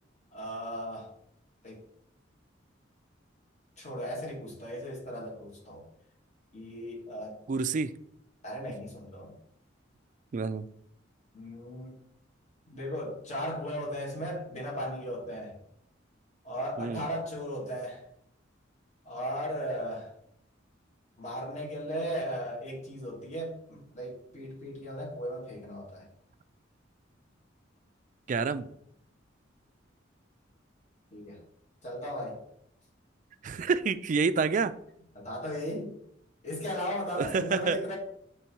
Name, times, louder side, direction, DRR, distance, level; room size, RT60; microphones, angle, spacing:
voice 1, 0.3-1.1 1.6-1.8 3.8-5.8 6.5-7.4 8.4-9.4 11.3-12.0 12.7-15.6 16.4-18.0 19.1-20.1 21.2-26.1 31.1-31.4 31.8-32.4 35.2-35.9 36.4-38.0, equal, 35° left, 2.0 m, -36 dB
voice 2, 7.5-7.9 10.3-10.7 16.8-17.1 28.3-28.7 33.4-34.8 37.2-37.8, right 4 dB, 40° right, 0.3 m, -28 dB
8.2 x 3.3 x 4.5 m
head